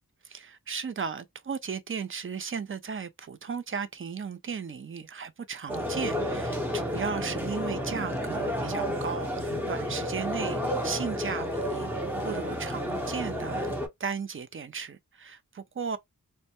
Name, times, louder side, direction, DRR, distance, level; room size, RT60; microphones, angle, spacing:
voice 1, 0.2-13.7 14.0-16.0, right 6 dB, 40° right, 0.4 m, -36 dB
sound 1, 5.7-13.9, equal, 5° right, 0.7 m, -31 dB
2.2 x 2.1 x 2.8 m
wide cardioid pair, 60°, 34 cm